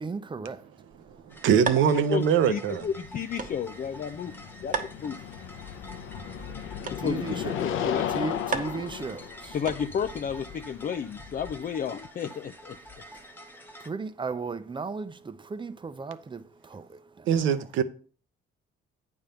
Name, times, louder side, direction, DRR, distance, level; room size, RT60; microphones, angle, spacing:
voice 1, 0.0-0.6 7.0-7.6 8.1-9.5 13.9-16.4 16.7-16.8, right 4 dB, 25° right, 0.7 m, -35 dB
sound 1, 0.9-10.2, right 5 dB, 45° right, 1.1 m, -39 dB
sound 2, 1.3-13.9, left 1 dB, 10° left, 1.0 m, -47 dB
voice 2, 1.3-2.9 17.3-17.8, right 8 dB, 80° right, 0.8 m, -23 dB
voice 3, 1.9-4.3 4.6-5.2 6.9-8.1 9.5-12.8, left 7 dB, 45° left, 0.5 m, -32 dB
sound 3, 3.0-11.9, left 9 dB, 85° left, 0.7 m, -35 dB
8.8 x 3.6 x 6.8 m
cardioid pair, 90°, 20 cm